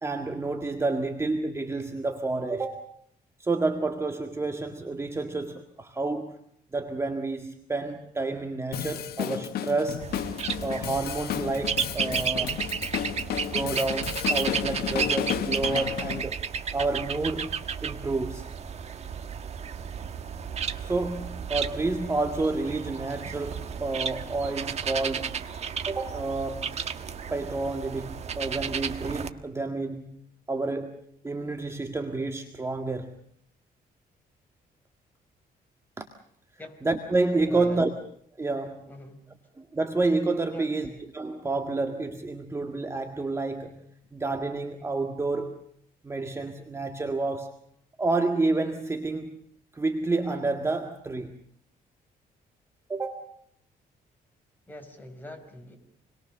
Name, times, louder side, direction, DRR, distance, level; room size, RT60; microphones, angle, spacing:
voice 1, 0.0-2.9 3.4-6.4 6.7-10.2 10.6-12.6 13.4-16.4 16.7-18.5 20.8-25.4 25.9-26.8 27.3-30.2 30.5-33.1 36.0-36.1 36.8-37.9 38.4-38.9 39.6-45.7 46.0-47.6 48.0-49.4 49.7-51.4 52.9-53.4, right 3 dB, 15° right, 1.9 m, -29 dB
Drum kit, 8.7-16.2, left 10 dB, 75° left, 1.4 m, -32 dB
sound 1, 10.0-29.3, right 7 dB, 40° right, 1.6 m, -33 dB
voice 2, 37.5-37.9 38.9-39.2 40.5-41.0 54.7-55.8, left 2 dB, 10° left, 5.4 m, -43 dB
28.0 x 22.5 x 6.8 m
cardioid pair, 145°, 16 cm